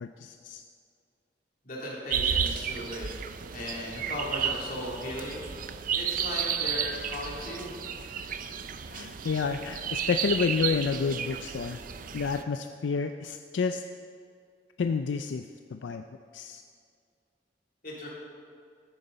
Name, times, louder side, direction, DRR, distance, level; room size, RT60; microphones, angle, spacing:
voice 1, 0.0-0.6 8.9-11.8 12.1-13.8 14.8-16.0 16.3-16.6, left 5 dB, 85° left, 7 dB, 0.4 m, -30 dB
voice 2, 1.6-3.1 3.5-5.5 5.9-7.7 17.8-18.1, left 1 dB, 55° left, -5 dB, 3.0 m, -37 dB
sound 1, 2.1-12.4, right 7 dB, 50° right, 0.5 m, -33 dB
14.0 x 9.5 x 4.0 m, 2.3 s
head